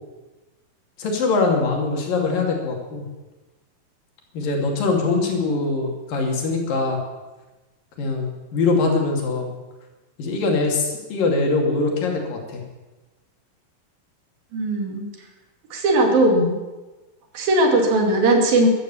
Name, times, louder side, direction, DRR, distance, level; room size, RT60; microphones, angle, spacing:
voice 1, 1.0-3.1 4.3-7.0 8.0-9.5 10.2-12.6, left 3 dB, 70° left, 1 dB, 4.2 m, -22 dB
voice 2, 14.5-15.1 15.7-16.6 17.3-18.7, right 1 dB, 80° right, 2 dB, 4.2 m, -18 dB
15.0 x 12.5 x 7.0 m, 1.2 s
omnidirectional pair, 4.1 m